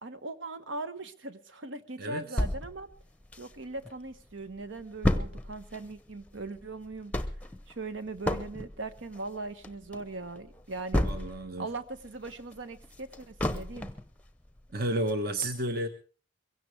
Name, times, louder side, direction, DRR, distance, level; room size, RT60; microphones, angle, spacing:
voice 1, 0.0-2.9 3.4-7.2 7.7-11.1 11.6-13.9, right 2 dB, 75° right, 11 dB, 1.3 m, -40 dB
voice 2, 2.0-2.4 11.0-11.7 14.7-15.9, right 1 dB, 50° right, 7 dB, 1.3 m, -32 dB
sound 1, 2.4-3.9 4.3-4.4 4.6-11.6 12.0-14.1 14.6-14.7 15.1-15.2, left 1 dB, 5° left, 0.8 m, -32 dB
22.5 x 16.5 x 3.4 m, 0.36 s
head